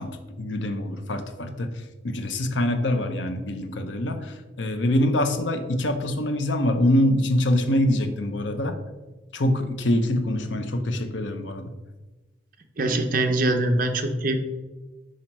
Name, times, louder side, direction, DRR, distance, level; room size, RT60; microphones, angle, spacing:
voice 1, 0.0-8.8 9.3-11.7, left 1 dB, 85° left, 8 dB, 0.8 m, -25 dB
voice 2, 12.8-14.4, right 2 dB, 50° right, 6 dB, 0.7 m, -23 dB
5.7 x 5.0 x 4.5 m, 1.2 s
head